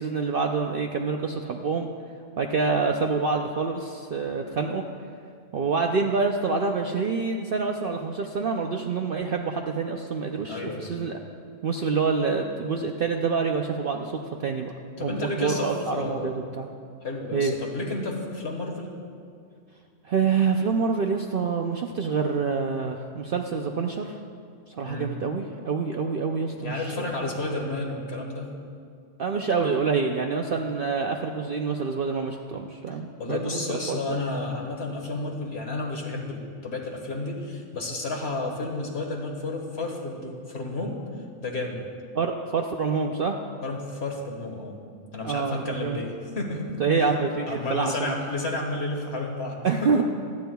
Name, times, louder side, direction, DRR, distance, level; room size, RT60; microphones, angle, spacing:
voice 1, 0.0-1.9 2.4-4.8 5.5-11.2 11.6-16.7 17.3-17.5 20.0-24.2 24.7-27.0 29.2-33.6 33.9-34.2 42.1-43.4 45.2-46.0 46.8-48.2 49.6-50.0, right 5 dB, 55° right, 3 dB, 0.6 m, -27 dB
voice 2, 10.5-10.9 15.0-16.4 17.0-18.9 24.8-25.1 26.6-28.5 33.2-41.0 41.4-41.9 43.6-44.7 45.1-46.7 47.5-50.0, left 2 dB, 50° left, 1 dB, 1.7 m, -31 dB
25.5 x 9.6 x 2.3 m, 2.3 s
omnidirectional pair, 1.4 m